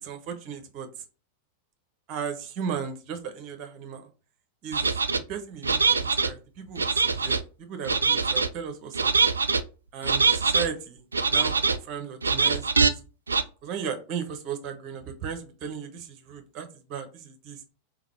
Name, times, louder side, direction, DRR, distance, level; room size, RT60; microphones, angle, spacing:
voice 1, 0.0-0.9 2.1-4.1 4.6-4.9 5.3-9.1 9.9-11.0 11.3-13.0 13.6-17.6, right 7 dB, 40° right, 7 dB, 0.9 m, -36 dB
sound 1, 4.7-5.2 5.6-6.3 6.8-7.4 7.9-8.5 8.9-9.6 10.0-10.7 11.1-11.8 12.2-12.9 13.3-13.4, right 4 dB, 75° right, 0.3 m, -23 dB
3.9 x 3.7 x 3.1 m, 0.34 s
figure-of-eight pair, 90°, 0 cm